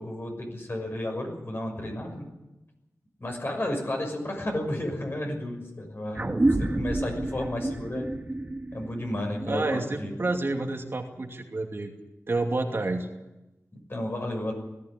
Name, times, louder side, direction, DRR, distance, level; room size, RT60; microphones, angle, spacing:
voice 1, 0.0-2.3 3.2-6.2 6.6-8.1 8.7-10.1 13.7-14.5, left 1 dB, 45° left, 2 dB, 6.2 m, -32 dB
sound 1, 6.1-11.0, right 2 dB, 30° right, 1.8 m, -30 dB
voice 2, 9.4-11.9 12.3-13.1, right 2 dB, 50° right, 2 dB, 2.6 m, -29 dB
19.0 x 14.5 x 9.7 m, 0.99 s
wide cardioid pair, 95°, 5 cm